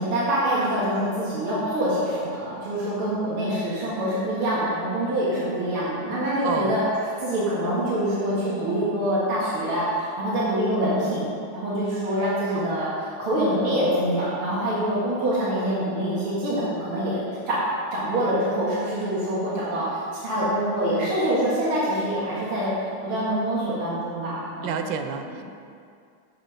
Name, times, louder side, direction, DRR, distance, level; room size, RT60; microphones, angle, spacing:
voice 1, 0.0-6.8 7.2-17.6 17.9-22.7 23.0-24.8, right 1 dB, 90° right, -8 dB, 2.7 m, -25 dB
voice 2, 6.4-6.8 12.5-12.8 24.6-25.4, right 6 dB, 70° right, 6 dB, 1.2 m, -29 dB
7.7 x 7.3 x 5.0 m, 2.4 s
omnidirectional pair, 2.3 m